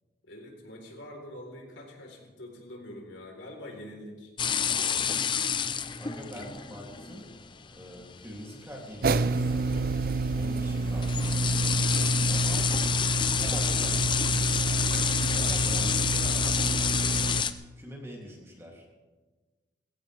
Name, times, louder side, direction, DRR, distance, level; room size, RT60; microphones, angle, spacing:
voice 1, 0.2-4.3 4.7-5.1 15.2-16.0, left 1 dB, 80° left, 0 dB, 4.0 m, -45 dB
sound 1, 4.4-17.5, left 7 dB, 25° left, 0.5 m, -29 dB
voice 2, 6.0-7.3 7.7-9.9 10.3-11.8 12.3-13.0 13.3-14.8 15.3-17.1 17.8-18.9, equal, 15° right, -2 dB, 2.9 m, -44 dB
sound 2, 9.0-17.4, right 2 dB, 50° right, 0.5 m, -28 dB
21.0 x 16.0 x 3.5 m, 1.3 s
head